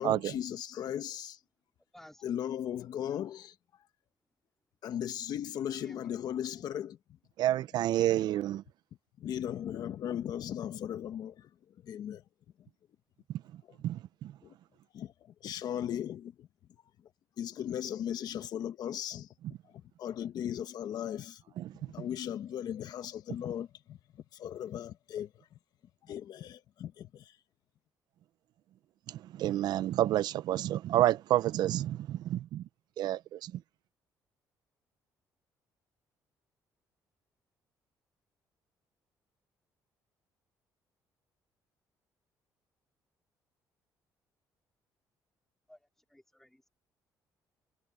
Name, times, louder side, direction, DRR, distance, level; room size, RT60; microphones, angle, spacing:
voice 1, 0.0-1.4 2.2-3.5 4.8-7.0 9.2-11.5 11.8-12.2 13.7-13.8 14.4-14.5 14.9-15.1 15.4-16.5 17.4-19.3 20.0-21.4 21.9-24.0 24.3-25.3 26.1-27.3, left 10 dB, 65° left, 1.4 m, -37 dB
voice 2, 1.9-2.3 5.7-6.1 45.7-45.8 46.1-46.7, left 1 dB, 5° left, 4.3 m, -54 dB
voice 3, 7.4-8.6 13.8-14.3 21.6-21.7 29.1-32.6 33.0-33.5, right 13 dB, 70° right, 0.5 m, -29 dB
cardioid pair, 125°, 7 cm